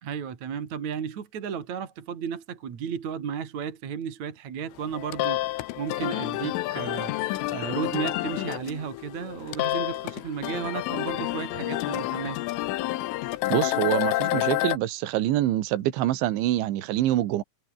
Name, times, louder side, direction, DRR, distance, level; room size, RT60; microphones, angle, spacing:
voice 1, 0.0-12.4, right 7 dB, 45° right, 3.2 m, -34 dB
sound 1, 4.8-14.8, left 17 dB, 90° left, 3.7 m, -29 dB
voice 2, 13.5-17.4, right 14 dB, 75° right, 4.0 m, -25 dB
omnidirectional pair, 5.6 m